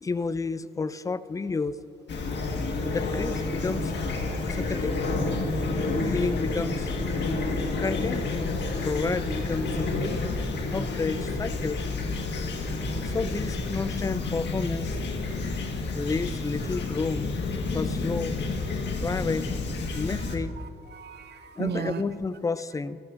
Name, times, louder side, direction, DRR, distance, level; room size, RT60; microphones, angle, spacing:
voice 1, 0.0-1.8 2.9-4.0 4.4-5.0 6.0-6.9 7.8-8.3 8.8-10.2 10.7-11.8 13.0-15.0 15.9-17.4 17.7-18.4 19.0-19.5 19.9-20.6 21.6-23.0, left 4 dB, 15° left, 15 dB, 0.4 m, -30 dB
Fowl / Chirp tweet, 2.1-20.4, left 3 dB, 60° left, 1.7 m, -29 dB
voice 2, 19.9-22.0, right 8 dB, 60° right, 11 dB, 0.6 m, -36 dB
18.0 x 13.5 x 2.6 m, 2.5 s
cardioid pair, 90°, 20 cm